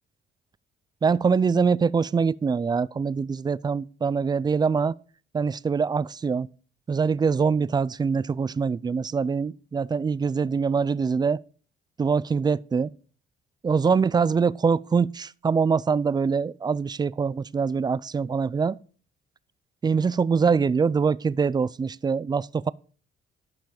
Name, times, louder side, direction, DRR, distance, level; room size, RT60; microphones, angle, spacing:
voice 1, 1.0-4.9 5.3-6.5 6.9-11.4 12.0-12.9 13.6-18.8 19.8-22.7, right 5 dB, 20° right, 0.3 m, -24 dB
11.5 x 5.8 x 4.9 m
cardioid pair, 90°, 20 cm